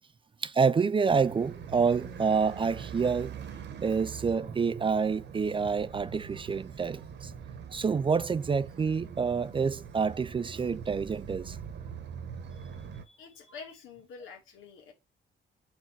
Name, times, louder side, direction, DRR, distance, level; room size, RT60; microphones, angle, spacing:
voice 1, 0.4-3.3 3.8-7.0 7.7-11.6, right 5 dB, 25° right, 0.4 m, -27 dB
sound 1, 1.1-13.0, right 7 dB, 60° right, 1.1 m, -43 dB
voice 2, 12.5-14.9, left 5 dB, 90° left, 2.3 m, -48 dB
4.6 x 4.5 x 5.9 m
cardioid pair, 90°, 20 cm